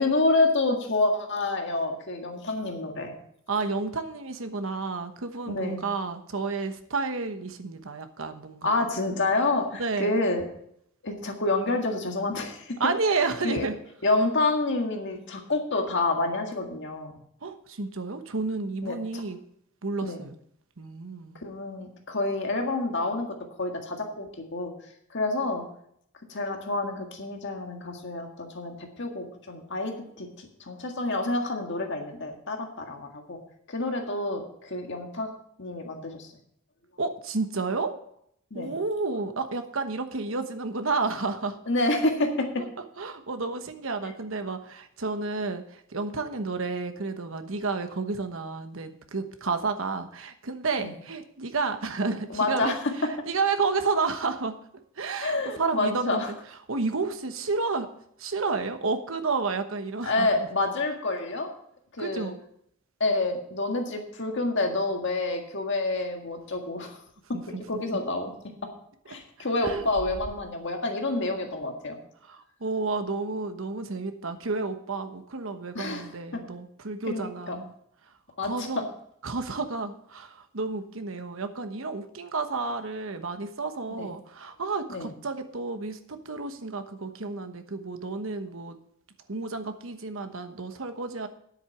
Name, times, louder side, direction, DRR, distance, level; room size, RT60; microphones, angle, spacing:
voice 1, 0.0-3.1 5.5-5.8 8.6-10.5 11.0-12.8 13.1-13.7 14.0-17.1 18.8-19.2 20.0-20.2 21.4-24.7 25.1-25.6 26.3-33.4 33.7-35.3 35.6-36.3 38.5-38.7 41.7-42.6 50.8-50.9 52.3-52.8 55.2-56.3 60.0-61.5 61.9-62.3 63.0-67.0 67.7-68.3 69.1-72.0 75.7-76.4 77.1-77.6 78.4-78.7 84.0-84.1 84.9-85.1, left 2 dB, 60° left, 3 dB, 1.8 m, -28 dB
voice 2, 3.5-8.8 9.8-10.2 12.8-13.7 17.4-19.4 19.8-20.4 20.8-21.4 37.0-37.9 38.5-41.6 43.0-54.5 55.0-56.2 56.7-57.9 58.2-60.5 62.0-62.3 67.3-67.6 69.6-69.9 72.2-77.7 78.4-78.9 79.2-88.8 89.3-91.3, right 4 dB, 65° right, 8 dB, 1.1 m, -31 dB
sound 1, 65.7-66.6 67.1-67.2 67.5-68.1 69.6-70.8 71.2-71.6, equal, 5° right, 0.7 m, -43 dB
10.0 x 8.0 x 5.9 m, 0.70 s
head